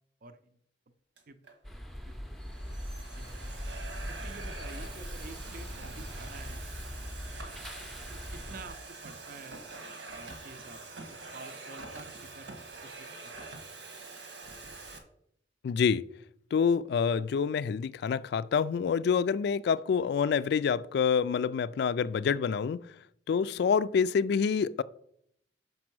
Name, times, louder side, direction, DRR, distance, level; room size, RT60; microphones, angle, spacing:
Domestic sounds home sounds, 1.2-1.5 2.3-15.0, right 3 dB, 85° right, 1.5 m, -45 dB
sound 1, 1.6-8.7, equal, ahead, 0.6 m, -41 dB
voice 1, 4.2-6.6 8.1-9.6 10.2-10.8 11.3-13.3, right 3 dB, 50° right, 0.6 m, -49 dB
voice 2, 15.6-16.0 16.5-22.8 23.3-24.8, left 6 dB, 65° left, 0.3 m, -27 dB
6.1 x 5.4 x 6.0 m
head